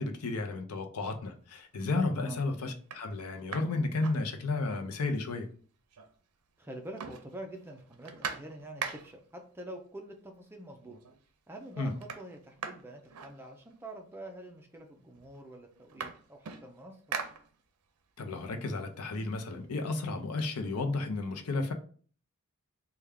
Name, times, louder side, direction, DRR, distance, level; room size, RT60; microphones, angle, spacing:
voice 1, 0.0-5.5 11.8-11.9 18.2-21.7, left 3 dB, 75° left, 0.6 m, -33 dB
sound 1, 1.4-1.8 2.3-2.4 2.8-4.9 5.2-5.3 5.5-6.4 6.6-9.4 10.3-10.4 10.8-11.3 11.5-14.0 14.8-14.9 15.2-18.0 18.4-20.1, right 6 dB, 85° right, 0.5 m, -43 dB
voice 2, 6.6-11.0 11.5-17.2, right 1 dB, 10° right, 0.4 m, -46 dB
3.3 x 2.3 x 3.5 m
head